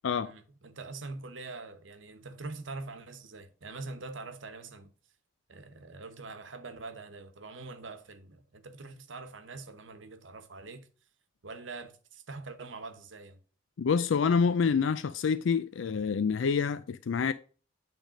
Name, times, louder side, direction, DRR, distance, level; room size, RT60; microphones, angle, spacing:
voice 1, 0.2-4.9 5.5-10.9 11.4-13.4, right 3 dB, 85° right, 1.0 m, -44 dB
voice 2, 13.8-17.3, left 5 dB, 85° left, 0.4 m, -27 dB
8.9 x 3.5 x 5.0 m
head